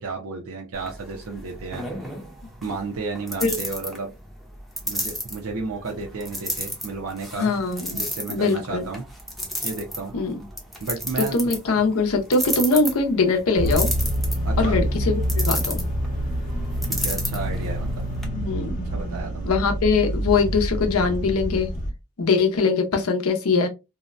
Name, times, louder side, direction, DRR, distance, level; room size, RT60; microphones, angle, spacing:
voice 1, 0.0-1.8 2.6-4.1 4.9-7.6 7.9-9.0 9.6-10.1 10.8-11.4 14.4-14.8 16.9-17.9 18.8-19.6, right 3 dB, 80° right, 0.6 m, -32 dB
sound 1, 0.7-18.3, equal, ahead, 0.5 m, -33 dB
voice 2, 7.3-8.0 8.3-8.8 10.1-10.5 11.2-13.9 14.6-15.8 18.2-18.9 19.4-21.7 22.2-23.7, left 4 dB, 80° left, 0.6 m, -22 dB
sound 2, 13.6-21.9, equal, 40° left, 0.7 m, -26 dB
2.7 x 2.1 x 2.4 m
head